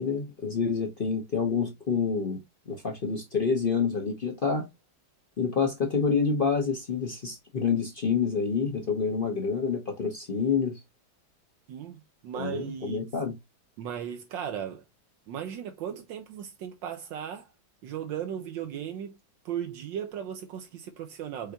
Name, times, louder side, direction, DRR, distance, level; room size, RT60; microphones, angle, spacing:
voice 1, 0.0-2.4 2.7-4.7 5.4-10.8 12.4-13.3, left 5 dB, 45° left, 0.7 m, -28 dB
voice 2, 11.7-13.2 13.8-14.9 15.3-17.5 17.8-19.2 19.4-21.5, right 9 dB, 80° right, 1.4 m, -36 dB
5.5 x 3.4 x 2.8 m
omnidirectional pair, 2.0 m